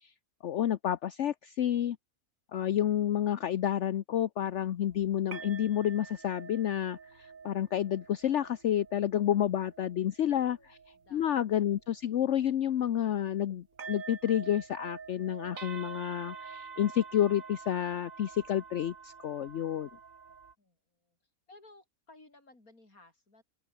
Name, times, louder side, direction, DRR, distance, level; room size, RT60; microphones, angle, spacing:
voice 1, 0.4-2.0 2.5-10.6 11.1-19.9, left 10 dB, 60° left, 1.0 m, -30 dB
sound 1, 4.5-13.5 13.7-20.5, right 5 dB, 70° right, 2.3 m, -48 dB
voice 2, 10.2-11.3 20.6-23.4, left 2 dB, 85° left, 6.3 m, -59 dB
open air
omnidirectional pair, 1.5 m